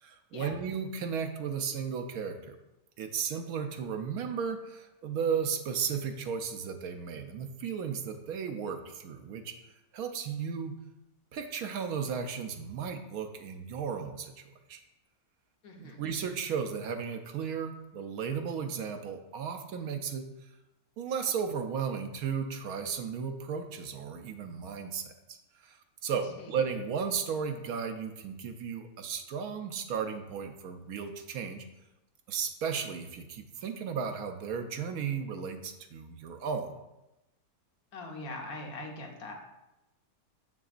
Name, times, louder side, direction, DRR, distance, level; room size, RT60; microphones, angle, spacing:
voice 1, 0.0-2.6 3.0-9.6 9.9-10.7 11.3-14.3 14.7-14.8 15.8-20.3 21.0-25.1 25.6-31.6 32.3-36.7, right 6 dB, 80° right, 6 dB, 1.0 m, -35 dB
voice 2, 15.6-16.0 26.1-26.5 37.9-39.3, left 2 dB, 80° left, 1 dB, 1.4 m, -42 dB
6.8 x 6.0 x 2.4 m, 0.95 s
omnidirectional pair, 1.6 m